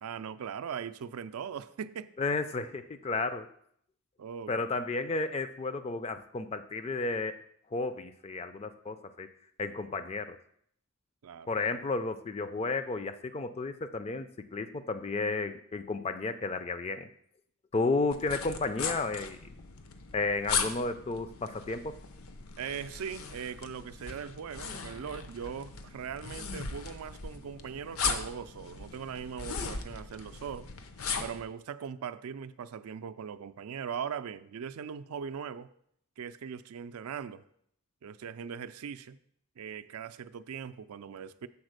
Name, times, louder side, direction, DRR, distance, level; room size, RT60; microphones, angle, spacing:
voice 1, 0.0-2.1 4.2-4.5 11.2-11.6 22.6-30.7 31.2-35.7 36.2-37.4 38.0-39.2 39.6-41.5, right 7 dB, 80° right, 12 dB, 0.4 m, -40 dB
voice 2, 2.2-3.5 4.5-7.4 7.7-9.3 9.6-10.4 11.5-17.1 17.7-19.5 20.1-22.0, left 3 dB, 25° left, 11 dB, 0.3 m, -32 dB
sound 1, 18.1-31.4, left 5 dB, 70° left, 0.7 m, -38 dB
7.0 x 4.1 x 6.5 m, 0.68 s
head